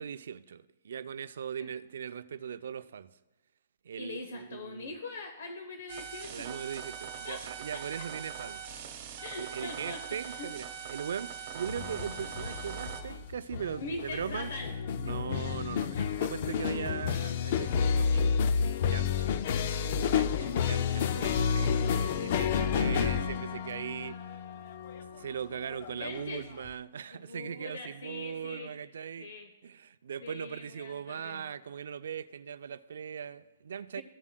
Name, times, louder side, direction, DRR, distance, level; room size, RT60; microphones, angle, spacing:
voice 1, 0.0-3.2 3.8-4.9 6.3-8.6 9.4-14.5 15.0-18.4 18.9-19.3 20.1-24.4 25.1-29.3 29.6-34.0, right 8 dB, 55° right, 0.4 m, -39 dB
voice 2, 4.0-6.6 7.2-7.5 7.7-8.1 9.2-10.5 13.8-14.8 15.0-15.2 16.4-16.5 25.9-26.5 27.1-28.7 29.2-29.5 30.2-31.4 34.0-34.1, left 3 dB, 55° left, 0.8 m, -42 dB
sound 1, 5.9-13.0, right 8 dB, 30° right, 1.2 m, -42 dB
sound 2, 11.7-26.7, left 6 dB, 35° left, 0.3 m, -30 dB
15.0 x 7.2 x 2.2 m
hypercardioid pair, 180°, 0 cm